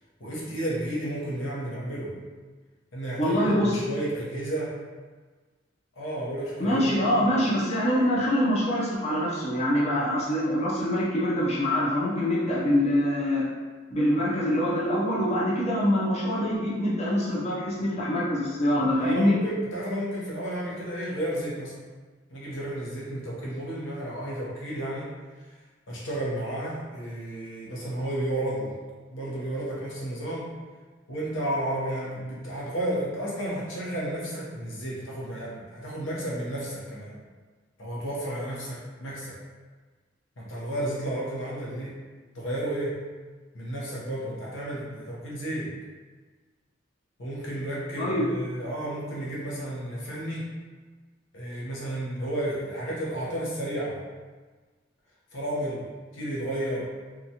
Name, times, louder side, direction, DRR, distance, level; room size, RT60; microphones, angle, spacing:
voice 1, 0.2-2.2 2.9-4.8 5.9-7.3 19.0-21.8 22.3-25.1 25.9-28.7 29.1-30.5 31.1-37.1 37.8-39.4 40.4-42.0 42.3-43.0 43.5-45.7 47.2-50.5 51.3-54.0 55.3-55.9 56.1-56.9, right 1 dB, 90° left, -6 dB, 0.9 m, -32 dB
voice 2, 3.2-3.8 6.6-13.5 13.9-19.4 48.0-48.3, equal, 35° left, -7 dB, 0.5 m, -24 dB
2.8 x 2.3 x 2.7 m, 1.4 s
head